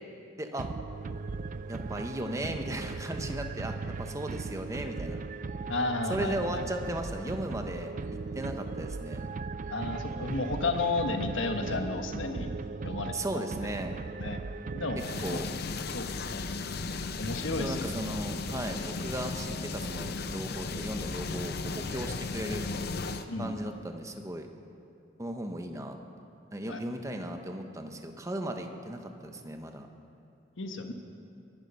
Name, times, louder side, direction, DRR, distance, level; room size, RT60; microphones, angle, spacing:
voice 1, 0.4-0.7 1.7-5.2 6.1-7.9 8.3-9.2 13.1-13.9 15.2-15.5 17.6-22.6 23.4-24.5 25.2-26.0 26.5-29.9, right 1 dB, 15° right, 5 dB, 1.0 m, -36 dB
sound 1, 0.6-15.6, right 4 dB, 40° right, 0.4 m, -38 dB
voice 2, 5.7-6.6 9.7-12.5 12.8-13.1 14.2-14.4 14.7-15.4 15.9-16.4 17.2-17.9 23.3-23.6 26.7-26.8 30.6-30.9, left 3 dB, 80° left, 5 dB, 1.3 m, -32 dB
sound 2, 15.0-23.3, left 3 dB, 55° left, 0.7 m, -35 dB
23.5 x 11.0 x 5.5 m, 2.6 s
head